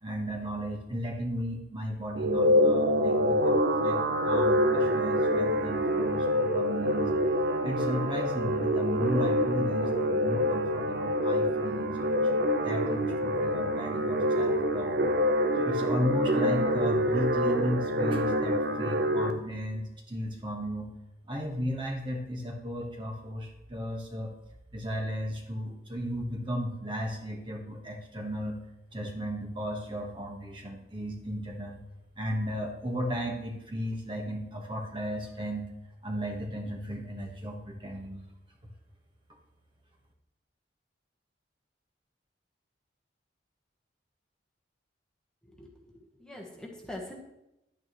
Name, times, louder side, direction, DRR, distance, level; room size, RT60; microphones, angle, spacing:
voice 1, 0.0-7.1 7.6-15.0 15.6-20.9 21.3-24.3 24.7-28.6 28.9-31.8 32.2-35.7 36.0-38.2, equal, 25° right, 0 dB, 1.4 m, -35 dB
sound 1, 2.1-19.3, equal, 55° right, 0.8 m, -26 dB
voice 2, 45.6-47.1, left 1 dB, 5° left, -2 dB, 1.3 m, -43 dB
11.0 x 9.4 x 3.1 m, 0.87 s
head